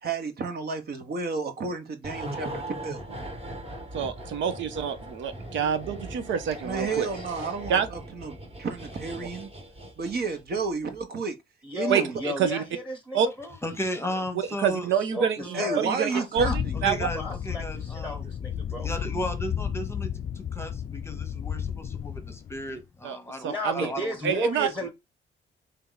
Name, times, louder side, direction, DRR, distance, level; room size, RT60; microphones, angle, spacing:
voice 1, 0.0-3.0 6.6-8.3 8.6-9.5 10.0-11.3 11.7-12.1 15.5-16.8, right 4 dB, 50° right, 1.1 m, -31 dB
sound 1, 2.0-10.6 10.8-11.0, right 1 dB, 30° right, 1.3 m, -40 dB
voice 2, 3.9-7.1 7.7-7.9 11.9-12.6 13.1-13.3 14.6-17.1 23.0-23.2 23.4-23.9 24.2-24.7, right 8 dB, 75° right, 0.7 m, -27 dB
voice 3, 6.8-7.2 11.6-13.6 14.2-14.3 15.1-16.6 17.0-18.9 23.4-24.9, left 1 dB, 10° right, 1.2 m, -34 dB
voice 4, 13.6-14.9 15.4-15.7 16.8-18.3 18.6-20.1 20.3-24.1 24.8-24.9, equal, 10° left, 0.9 m, -35 dB
sound 2, 16.4-22.7, left 8 dB, 40° left, 0.4 m, -33 dB
3.3 x 2.9 x 3.9 m
cardioid pair, 90°, 20 cm